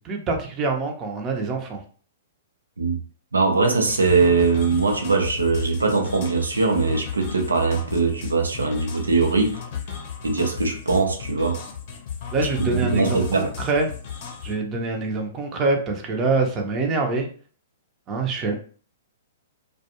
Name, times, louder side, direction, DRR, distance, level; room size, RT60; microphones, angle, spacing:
voice 1, 0.0-1.8 12.3-13.9 14.4-17.3 18.1-18.5, right 3 dB, 30° right, 0.7 m, -25 dB
voice 2, 3.3-9.6 10.2-11.6 12.4-12.5 12.8-13.5, right 4 dB, 85° right, 0.7 m, -21 dB
sound 1, 3.9-14.5, left 7 dB, 50° left, 0.7 m, -35 dB
2.3 x 2.3 x 2.9 m
hypercardioid pair, 115°, 0 cm